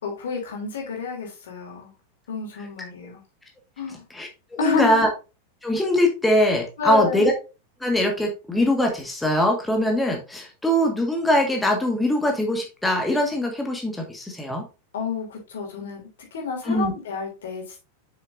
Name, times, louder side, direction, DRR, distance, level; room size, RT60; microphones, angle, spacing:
voice 1, 0.0-1.9 2.3-3.2 3.8-4.0 4.6-5.0 6.8-7.3 14.9-16.0 16.3-17.8, left 5 dB, 60° left, 0 dB, 3.2 m, -29 dB
voice 2, 4.1-5.1 5.6-7.3 7.8-14.6 16.6-16.9, left 1 dB, 5° left, 1 dB, 1.8 m, -22 dB
7.4 x 6.7 x 2.7 m, 0.30 s
figure-of-eight pair, 90°, 0 cm